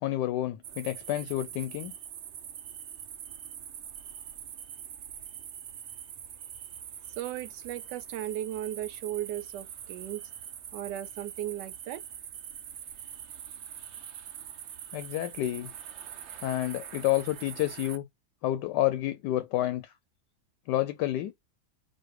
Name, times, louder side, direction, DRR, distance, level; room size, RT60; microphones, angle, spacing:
voice 1, 0.0-1.9 14.9-15.7 16.4-18.0 18.4-19.9 20.7-21.3, left 14 dB, 85° left, 1.2 m, -29 dB
sound 1, 0.6-18.0, right 9 dB, 65° right, 0.7 m, -44 dB
voice 2, 7.2-10.2 10.7-12.0, right 13 dB, 85° right, 1.2 m, -36 dB
4.2 x 2.5 x 4.6 m
omnidirectional pair, 1.8 m